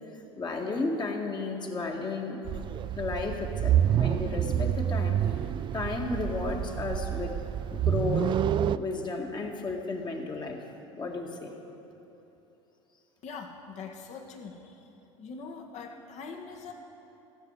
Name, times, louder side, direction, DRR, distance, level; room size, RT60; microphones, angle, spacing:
voice 1, 0.1-2.4 3.0-5.3 5.7-7.4 7.7-8.4 8.7-10.6 10.9-11.5, left 3 dB, 30° left, 1 dB, 1.8 m, -33 dB
sound 1, 2.5-8.8, right 10 dB, 30° right, 0.4 m, -28 dB
voice 2, 13.2-14.9 15.2-16.7, left 5 dB, 50° left, 2 dB, 1.8 m, -42 dB
16.5 x 7.5 x 8.1 m, 3.0 s
hypercardioid pair, 75°, 16 cm